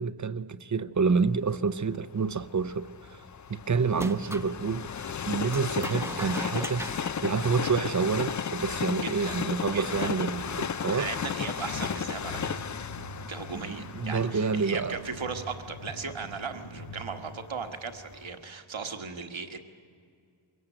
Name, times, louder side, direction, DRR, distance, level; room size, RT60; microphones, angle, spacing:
voice 1, 0.0-3.2 3.5-6.9 7.2-11.1 13.9-15.0, right 5 dB, 35° right, 0.6 m, -28 dB
Train, 1.5-17.5 18.0-18.1, left 7 dB, 40° left, 0.5 m, -35 dB
sound 1, 3.9-4.5 5.5-8.2, right 1 dB, 5° right, 0.9 m, -39 dB
voice 2, 9.0-9.4 9.7-10.1 10.9-12.6 13.3-19.6, right 5 dB, 70° right, 1.6 m, -37 dB
sound 2, 11.3-18.1, equal, 75° left, 2.4 m, -44 dB
23.0 x 17.5 x 9.1 m
wide cardioid pair, 80°, 49 cm